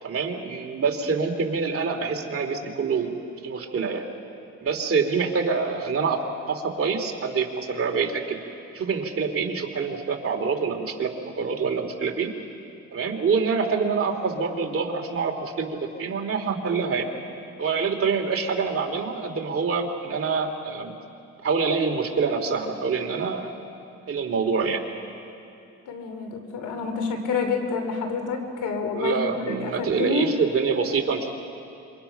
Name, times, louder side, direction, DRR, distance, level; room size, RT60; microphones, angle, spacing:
voice 1, 0.0-3.1 3.4-4.0 4.6-6.2 6.5-8.4 8.7-12.3 12.9-17.1 17.6-20.9 21.4-23.5 24.1-24.8 29.0-31.3, right 5 dB, 45° right, 3 dB, 2.7 m, -26 dB
voice 2, 25.9-30.3, left 4 dB, 85° left, 5 dB, 3.0 m, -28 dB
26.5 x 24.5 x 5.8 m, 2.6 s
cardioid pair, 90°, 30 cm